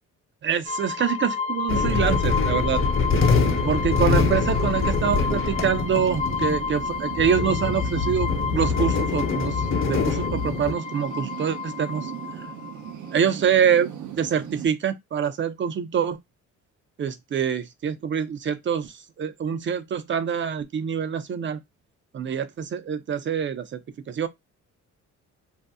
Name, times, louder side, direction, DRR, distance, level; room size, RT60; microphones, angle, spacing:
voice 1, 0.4-2.8 3.6-12.1 13.1-16.2 17.0-21.6 22.1-23.8 24.1-24.3, right 7 dB, 40° right, 0.5 m, -25 dB
sound 1, 0.7-13.1, left 5 dB, 25° left, 0.3 m, -31 dB
sound 2, 1.7-10.7, left 4 dB, 45° left, 0.9 m, -24 dB
sound 3, 2.7-14.7, right 10 dB, 75° right, 0.7 m, -38 dB
2.7 x 2.0 x 3.5 m
cardioid pair, 90°, 30 cm